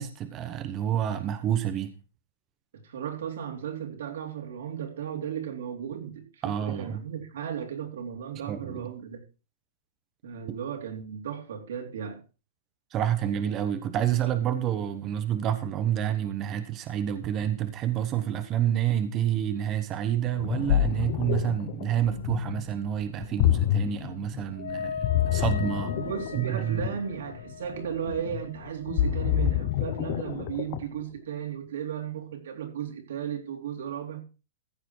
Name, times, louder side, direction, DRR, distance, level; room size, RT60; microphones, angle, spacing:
voice 1, 0.0-1.9 6.4-7.0 8.5-8.9 10.5-10.6 12.9-26.0 26.4-26.9, right 10 dB, 20° right, 1.0 m, -28 dB
voice 2, 2.8-9.2 10.2-12.2 25.9-34.2, right 8 dB, 70° right, 3.6 m, -35 dB
Ocean, 20.2-31.0, left 12 dB, 40° left, 1.0 m, -28 dB
Wind instrument woodwind instrument, 24.6-30.2, left 6 dB, 85° left, 3.9 m, -39 dB
15.0 x 7.8 x 4.6 m
hypercardioid pair, 170°, 0 cm